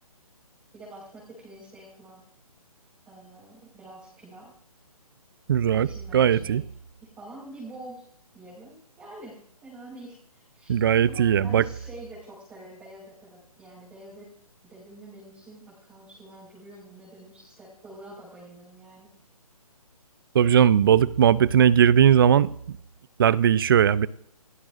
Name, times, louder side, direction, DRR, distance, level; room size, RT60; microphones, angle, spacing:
voice 1, 0.7-2.2 3.1-4.5 5.7-6.6 7.0-8.0 8.3-10.8 11.1-14.3 14.6-19.1, right 1 dB, 10° right, 5.0 m, -46 dB
voice 2, 5.5-6.6 10.7-11.6 20.3-22.5 23.2-24.1, right 9 dB, 35° right, 0.6 m, -19 dB
29.0 x 17.5 x 2.6 m
hypercardioid pair, 155°, 19 cm